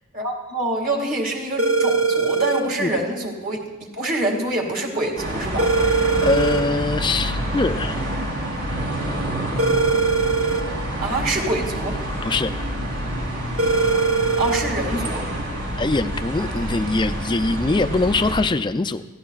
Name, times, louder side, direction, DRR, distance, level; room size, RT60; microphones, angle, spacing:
voice 1, 0.1-3.6 3.9-5.7 11.0-12.0 14.4-15.2, right 2 dB, 40° right, 1 dB, 2.3 m, -25 dB
sound 1, 1.6-2.6 5.6-6.6 9.6-10.6 13.6-14.6, right 4 dB, 70° right, 1.4 m, -20 dB
sound 2, 5.2-18.4, right 1 dB, 85° right, 3.7 m, -27 dB
voice 2, 6.2-8.0 12.2-12.5 15.8-19.0, left 3 dB, 20° left, 11 dB, 0.4 m, -22 dB
23.5 x 15.5 x 2.4 m, 1.1 s
head